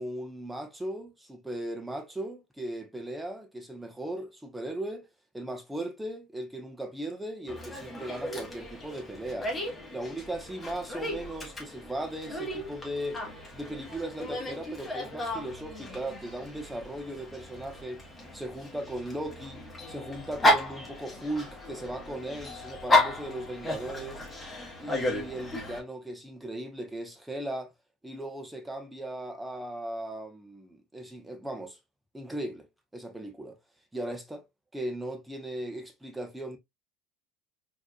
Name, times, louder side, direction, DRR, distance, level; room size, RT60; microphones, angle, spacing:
voice 1, 0.0-5.1 5.3-9.5 9.9-13.3 13.5-19.6 19.9-24.3 24.8-27.7 28.0-31.8 32.1-32.7 32.9-33.6 33.9-34.5 34.7-36.6, right 1 dB, 10° right, 1.1 m, -37 dB
Dog, 7.5-25.8, left 1 dB, 20° left, 1.7 m, -33 dB
4.2 x 3.1 x 2.4 m
hypercardioid pair, 75°, 0 cm